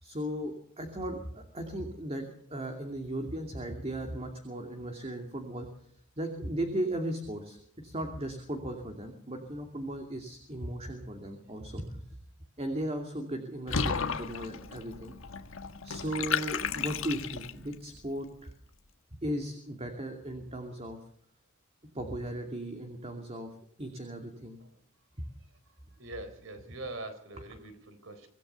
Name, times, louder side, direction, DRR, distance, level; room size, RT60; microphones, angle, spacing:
voice 1, 0.0-2.2 2.5-5.7 6.2-12.0 12.6-15.1 15.8-18.5 19.1-21.0 21.9-24.6 25.2-25.3, right 1 dB, 30° right, 4 dB, 2.7 m, -37 dB
Water / Bathtub (filling or washing), 13.7-17.7, left 6 dB, 65° left, 1.5 m, -33 dB
voice 2, 26.0-28.3, right 2 dB, 65° right, 10 dB, 4.2 m, -43 dB
25.5 x 16.5 x 7.0 m, 0.64 s
head